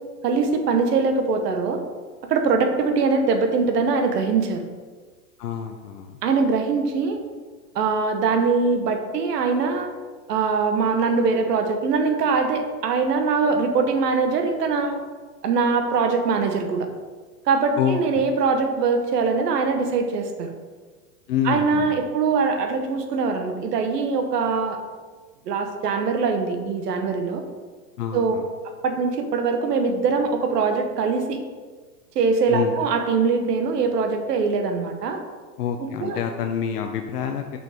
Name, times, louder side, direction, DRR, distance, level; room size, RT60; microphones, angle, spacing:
voice 1, 0.2-1.8 2.3-4.6 6.2-7.2 7.7-9.9 10.3-14.9 15.4-16.9 17.5-20.5 21.4-24.8 25.5-27.4 28.1-28.3 28.8-31.4 32.1-35.2 35.8-36.2, right 4 dB, 70° right, 5 dB, 1.2 m, -22 dB
voice 2, 5.4-6.2 17.8-18.0 21.3-22.0 28.0-28.4 32.5-32.7 35.6-37.6, left 8 dB, 65° left, 4 dB, 0.7 m, -27 dB
6.2 x 5.5 x 3.5 m, 1.4 s
hypercardioid pair, 140°, 50 cm